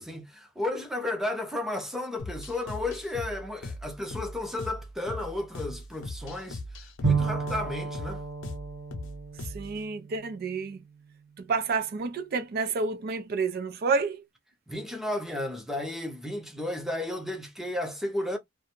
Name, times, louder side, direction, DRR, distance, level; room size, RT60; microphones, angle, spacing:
voice 1, 0.0-6.6 7.0-8.2 14.7-18.4, left 1 dB, ahead, 0.6 m, -33 dB
sound 1, 2.2-9.8, left 2 dB, 75° left, 0.6 m, -40 dB
Bowed string instrument, 7.0-10.8, right 4 dB, 70° right, 1.0 m, -32 dB
voice 2, 9.5-10.8 11.4-14.2, right 4 dB, 50° right, 0.4 m, -29 dB
2.4 x 2.1 x 2.9 m
head